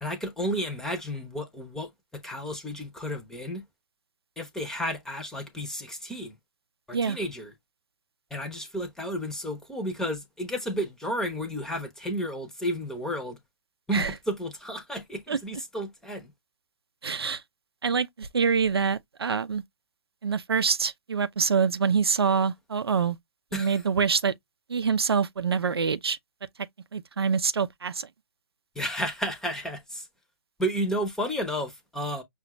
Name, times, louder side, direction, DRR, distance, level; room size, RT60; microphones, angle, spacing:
voice 1, 0.0-3.6 4.4-6.3 6.9-7.5 8.3-13.4 13.9-16.3 23.5-23.8 28.8-30.1 30.6-32.2, equal, 5° left, 0.8 m, -32 dB
voice 2, 17.0-17.4 17.8-19.6 20.2-23.2 23.5-24.3 24.7-26.2 26.9-28.1, right 6 dB, 70° right, 0.6 m, -25 dB
5.8 x 2.4 x 3.0 m
figure-of-eight pair, 135°, 13 cm